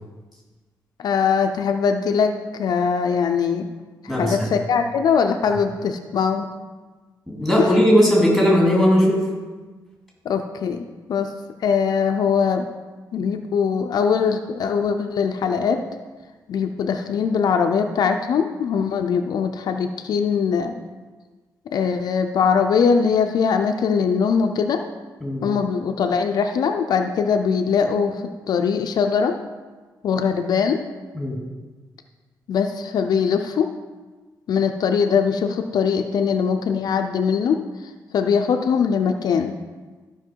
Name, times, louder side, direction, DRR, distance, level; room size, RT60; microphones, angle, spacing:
voice 1, 1.0-3.7 4.0-6.5 7.6-7.7 10.2-11.3 11.6-12.7 13.1-15.8 16.5-20.7 21.7-24.8 25.4-29.4 30.0-30.8 32.5-33.7 34.5-39.6, left 6 dB, 65° left, 5 dB, 0.6 m, -21 dB
voice 2, 4.1-4.5 7.3-9.3 25.2-25.4 31.1-31.4, equal, ahead, -4 dB, 2.6 m, -18 dB
13.0 x 5.7 x 4.6 m, 1.3 s
wide cardioid pair, 155°, 7 cm